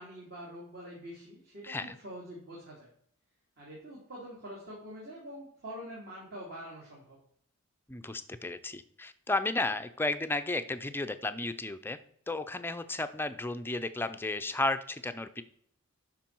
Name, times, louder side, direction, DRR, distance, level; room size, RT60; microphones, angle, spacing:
voice 1, 0.0-2.9 3.6-7.2, equal, 45° right, -4 dB, 2.5 m, -45 dB
voice 2, 1.6-2.0 7.9-12.0 12.3-15.4, left 2 dB, 10° left, 10 dB, 0.5 m, -33 dB
11.5 x 4.6 x 4.5 m, 0.65 s
head